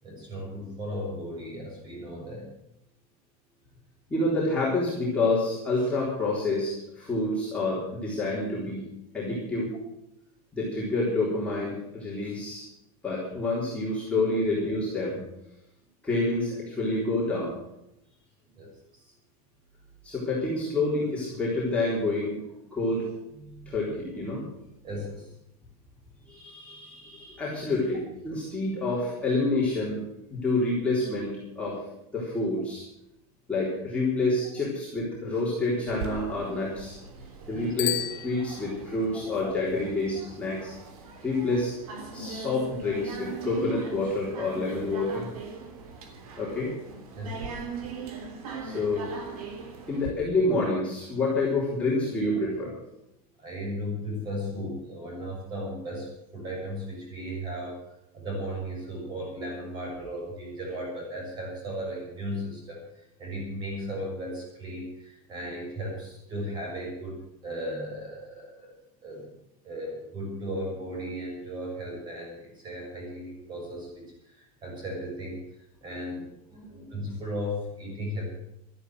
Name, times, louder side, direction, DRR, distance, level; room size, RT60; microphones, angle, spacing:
voice 1, 0.0-2.6 18.6-19.1 23.4-23.7 24.8-25.3 37.5-37.7 47.1-47.6 53.4-68.7 69.0-69.3 69.6-75.4 75.8-76.3 76.7-78.2, equal, 25° right, 0 dB, 6.7 m, -36 dB
voice 2, 4.1-8.8 9.1-9.8 10.5-12.7 13.0-15.2 16.0-17.5 20.0-22.4 22.7-23.1 23.7-24.4 26.3-30.0 30.3-31.8 32.1-32.8 33.5-37.0 37.5-40.7 41.2-41.7 42.1-45.3 46.4-46.7 48.6-49.4 49.9-52.7 76.5-77.0, left 2 dB, 5° left, -7 dB, 3.7 m, -28 dB
sound 1, 35.9-50.1, right 4 dB, 70° right, 3.4 m, -40 dB
Bicycle bell, 37.7-39.1, left 16 dB, 35° left, 1.3 m, -33 dB
13.0 x 11.5 x 7.8 m, 0.81 s
supercardioid pair, 175°, 19 cm